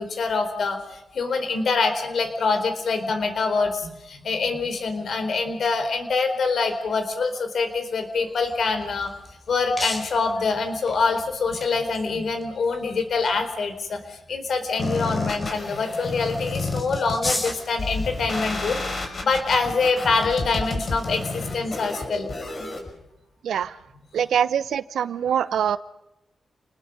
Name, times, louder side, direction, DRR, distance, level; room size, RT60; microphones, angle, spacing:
voice 1, 0.0-9.1 9.5-18.8 19.2-22.3 22.6-22.8, left 4 dB, 65° left, 8 dB, 4.3 m, -25 dB
sound 1, 8.4-22.9, left 2 dB, 30° left, 4.8 m, -40 dB
sound 2, 14.8-22.8, left 3 dB, 45° left, 5.4 m, -31 dB
voice 2, 24.1-25.8, right 8 dB, 90° right, 15 dB, 0.9 m, -23 dB
29.0 x 20.5 x 5.4 m, 0.90 s
cardioid pair, 100°, 0 cm